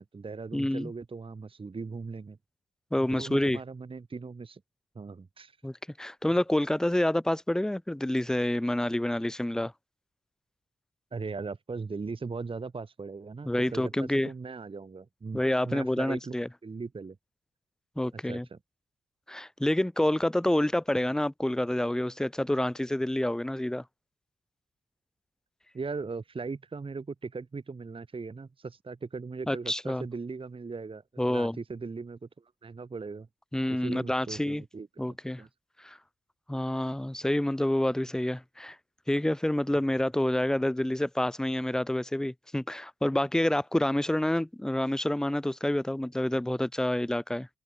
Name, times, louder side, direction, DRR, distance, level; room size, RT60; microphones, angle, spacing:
voice 1, 0.0-2.4 3.0-4.6 4.9-5.6 11.1-17.2 18.1-18.6 25.7-33.3 33.7-35.1 35.4-35.5, right 4 dB, 30° right, 1.0 m, -39 dB
voice 2, 0.5-0.9 2.9-3.6 5.6-9.7 13.5-14.3 15.3-16.5 18.0-18.5 19.3-23.8 29.5-30.1 31.2-31.6 33.5-34.6 35.0-35.4 35.8-36.0 36.5-38.8 39.1-47.5, left 1 dB, 5° left, 0.5 m, -28 dB
cardioid pair, 85°, 17 cm